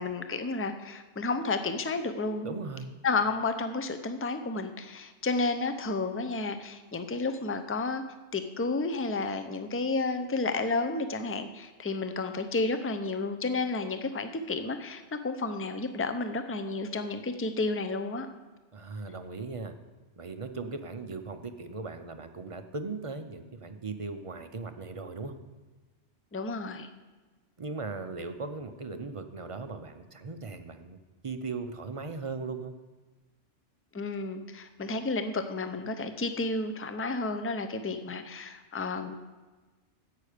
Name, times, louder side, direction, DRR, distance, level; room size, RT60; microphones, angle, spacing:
voice 1, 0.0-2.6 3.0-8.0 8.3-18.3 26.3-26.9 33.9-39.1, left 3 dB, 20° left, 9 dB, 0.4 m, -31 dB
voice 2, 2.4-2.9 18.7-19.7 20.2-25.3 27.6-31.0 31.2-32.7, right 3 dB, 35° right, 8 dB, 0.5 m, -38 dB
11.0 x 8.3 x 5.0 m, 1.3 s
omnidirectional pair, 1.2 m